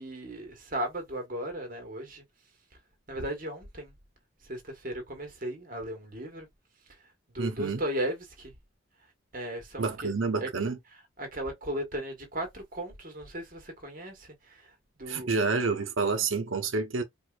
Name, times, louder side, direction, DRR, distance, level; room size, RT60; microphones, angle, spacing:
voice 1, 0.0-2.2 3.1-3.9 4.5-6.5 7.3-8.5 9.3-10.1 10.4-10.5 11.2-14.7 15.0-15.3, right 1 dB, 45° right, 1.6 m, -36 dB
voice 2, 7.4-7.8 9.8-10.8 15.1-17.0, right 4 dB, 80° right, 0.9 m, -28 dB
4.6 x 2.6 x 2.4 m
head